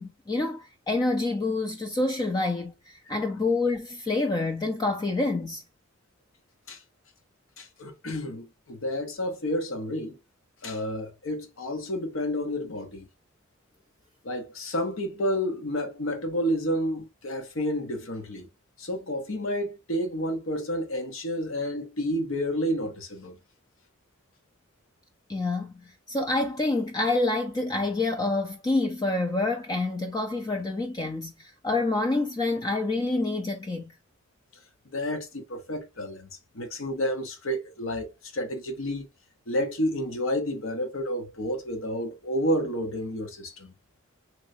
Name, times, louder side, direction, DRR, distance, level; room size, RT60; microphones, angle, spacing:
voice 1, 0.0-5.6 25.3-33.9, left 2 dB, 20° left, 0.3 m, -27 dB
voice 2, 7.6-10.2 10.6-13.1 14.2-18.5 18.8-23.4 34.9-39.1 39.5-43.8, equal, 80° left, 0.8 m, -30 dB
3.1 x 3.0 x 2.6 m
head